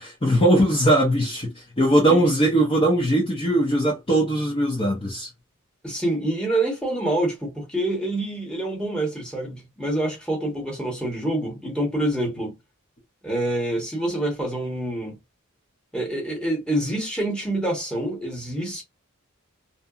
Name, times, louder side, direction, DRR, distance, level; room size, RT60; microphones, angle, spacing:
voice 1, 0.0-5.3, right 1 dB, 25° left, 0.6 m, -20 dB
voice 2, 5.8-12.5 13.2-15.2 15.9-18.8, right 1 dB, 5° left, 1.0 m, -26 dB
2.7 x 2.2 x 2.4 m
head